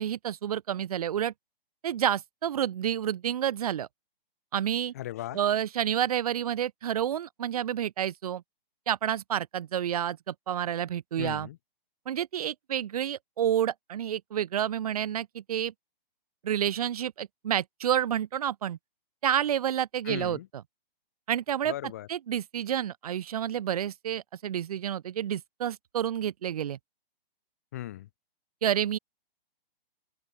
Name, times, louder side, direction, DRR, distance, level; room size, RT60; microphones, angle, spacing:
voice 1, 0.0-1.3 1.8-3.9 4.5-4.9 5.3-8.4 8.9-11.5 12.0-15.7 16.4-18.8 19.2-20.4 21.3-21.7 22.1-26.8 28.6-29.0, right 10 dB, 40° right, 1.5 m, -29 dB
voice 2, 4.9-5.4 11.2-11.6 20.0-20.5 21.6-22.1 27.7-28.1, left 14 dB, 15° left, 0.7 m, -37 dB
open air
hypercardioid pair, 170°, 29 cm